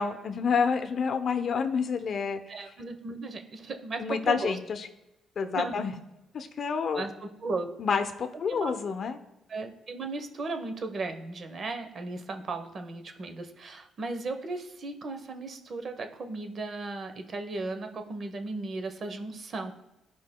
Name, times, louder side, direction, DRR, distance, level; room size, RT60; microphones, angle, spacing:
voice 1, 0.0-2.4 4.0-4.9 5.4-5.9 6.3-7.0 7.8-9.2, left 6 dB, 55° left, 7 dB, 0.7 m, -28 dB
voice 2, 2.5-4.6 5.5-5.8 6.9-7.7 8.5-8.8 9.5-19.7, right 3 dB, 50° right, 7 dB, 1.0 m, -36 dB
14.0 x 5.1 x 2.3 m, 0.93 s
cardioid pair, 90°, 0 cm